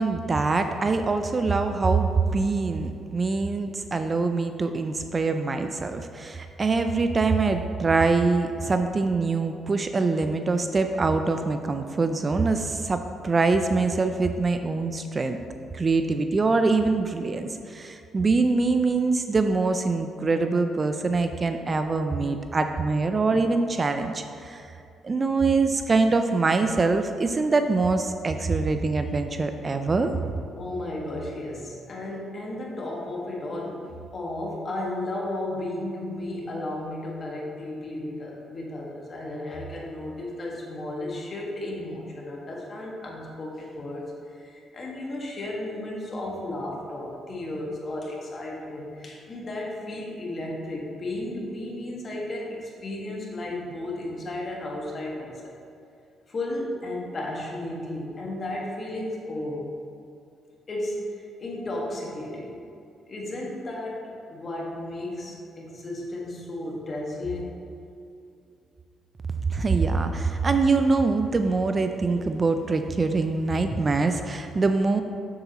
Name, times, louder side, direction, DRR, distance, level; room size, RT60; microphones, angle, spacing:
voice 1, 0.0-15.4 15.7-24.7 25.0-30.1 69.5-75.0, right 3 dB, 35° right, 7 dB, 0.4 m, -24 dB
voice 2, 30.6-55.6 56.3-59.7 60.7-62.6 63.1-67.7, left 1 dB, 40° left, -2 dB, 1.6 m, -34 dB
7.4 x 6.9 x 3.0 m, 2.6 s
cardioid pair, 90°, 0 cm